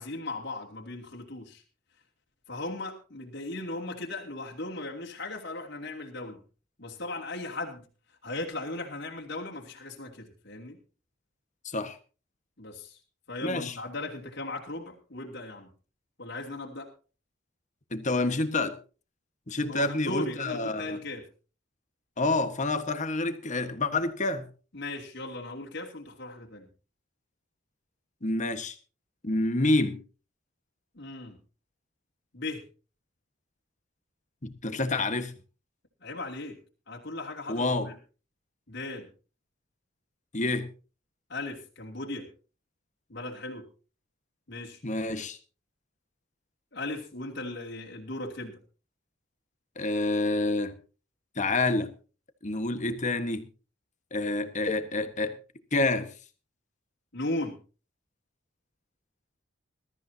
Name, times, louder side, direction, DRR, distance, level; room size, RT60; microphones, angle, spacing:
voice 1, 0.0-1.6 2.5-6.4 6.8-7.8 8.2-10.8 12.6-13.0 13.3-15.7 16.2-16.9 19.7-21.3 24.7-26.7 30.9-31.4 32.3-32.6 36.0-36.6 36.9-37.9 38.7-39.1 41.3-42.3 43.1-43.7 44.5-44.8 46.7-48.6 57.1-57.6, left 2 dB, 60° left, 2.9 m, -37 dB
voice 2, 11.6-12.0 13.4-13.8 17.9-18.8 19.5-21.0 22.2-24.5 28.2-28.7 29.2-30.0 34.4-35.3 37.5-37.9 40.3-40.7 44.8-45.4 49.8-50.8 51.4-51.9 52.4-53.4 54.1-55.3 55.7-56.1, left 2 dB, 40° left, 1.4 m, -28 dB
21.0 x 13.5 x 2.8 m
head